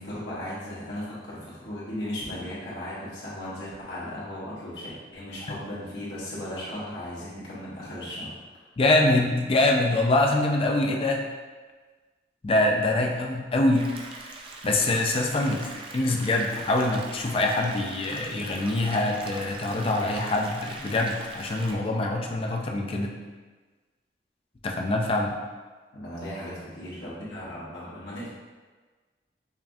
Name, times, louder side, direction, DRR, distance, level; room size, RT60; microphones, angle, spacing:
voice 1, 0.0-8.3 25.9-28.3, left 1 dB, 80° left, -9 dB, 1.2 m, -36 dB
voice 2, 8.8-11.2 12.4-13.9 14.6-15.7 15.9-23.2 24.6-25.4, left 2 dB, 30° left, 1 dB, 0.4 m, -24 dB
sound 1, 13.7-21.7, right 2 dB, 30° right, 0.4 m, -42 dB
5.3 x 2.3 x 2.6 m, 1.4 s
head